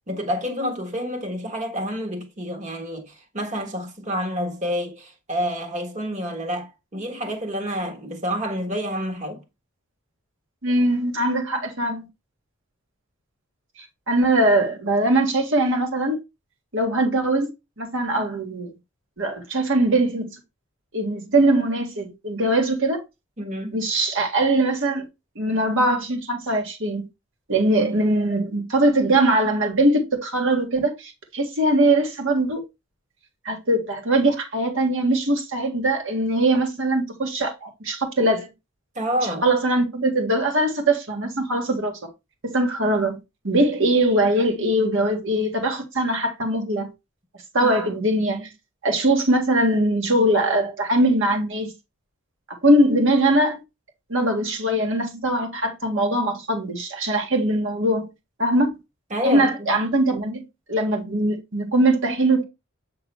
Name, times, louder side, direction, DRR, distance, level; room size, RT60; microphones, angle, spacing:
voice 1, 0.1-9.4 23.4-23.8 38.9-39.4 47.6-47.7 59.1-59.8, equal, 35° right, 1.5 m, -28 dB
voice 2, 10.6-12.1 14.1-16.2 16.7-17.5 17.8-18.7 19.2-20.3 20.9-23.0 23.7-25.1 25.4-27.0 27.5-32.6 33.5-38.5 39.4-42.1 42.4-43.2 43.4-46.9 47.5-48.5 48.8-51.7 52.6-53.6 54.1-58.1 58.4-58.7 59.2-60.4 60.7-62.4, right 1 dB, 60° right, 2.0 m, -21 dB
7.9 x 3.7 x 3.4 m
head